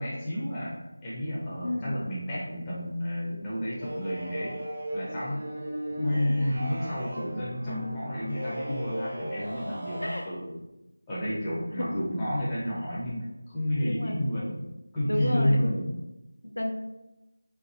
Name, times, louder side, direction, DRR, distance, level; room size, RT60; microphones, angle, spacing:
voice 1, 0.0-4.5 4.9-5.4 6.0-10.5 11.1-14.7 14.9-15.9, equal, 15° left, -9 dB, 0.7 m, -30 dB
voice 2, 1.6-2.0 6.3-6.7 7.2-7.3 10.0-10.2 11.7-12.1 13.8-14.4 15.0-15.6 16.4-16.7, left 1 dB, 80° left, 2 dB, 0.4 m, -32 dB
sound 1, 3.8-10.2, equal, 35° right, 0.5 m, -36 dB
2.8 x 2.2 x 2.8 m, 0.97 s
figure-of-eight pair, 165°, 0 cm